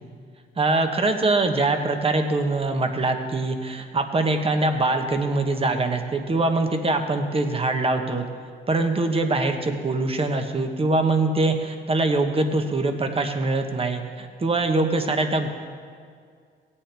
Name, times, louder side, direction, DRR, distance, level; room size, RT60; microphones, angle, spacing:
voice 1, 0.6-8.2 8.7-15.5, right 2 dB, 30° right, 6 dB, 1.1 m, -23 dB
17.0 x 8.4 x 3.4 m, 2.1 s
cardioid pair, 90°, 20 cm